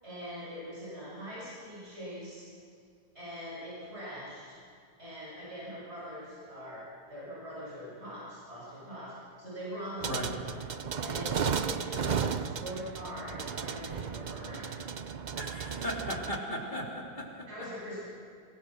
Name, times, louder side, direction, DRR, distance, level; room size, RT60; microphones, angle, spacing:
voice 1, 0.0-2.5 3.1-4.6 5.0-10.5 11.0-14.7 17.5-18.0, equal, 40° right, -8 dB, 8.0 m, -42 dB
sound 1, 10.0-16.4, right 6 dB, 65° right, 0.4 m, -34 dB
voice 2, 15.3-17.5, equal, 30° left, -1 dB, 3.6 m, -37 dB
26.0 x 20.5 x 6.4 m, 2.3 s
omnidirectional pair, 1.7 m